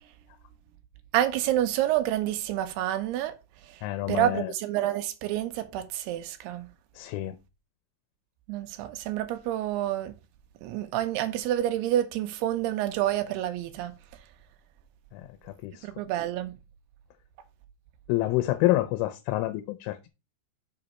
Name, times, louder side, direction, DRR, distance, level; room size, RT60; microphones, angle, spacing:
voice 1, 1.1-3.4 3.7-3.8 4.1-6.7 8.5-10.1 10.6-13.9 15.8-16.5, right 12 dB, 80° right, 2.4 m, -28 dB
voice 2, 3.8-4.5 7.0-7.4 15.1-15.2 15.6-15.9 18.1-20.1, left 16 dB, 85° left, 3.2 m, -27 dB
6.9 x 5.3 x 4.2 m
omnidirectional pair, 5.5 m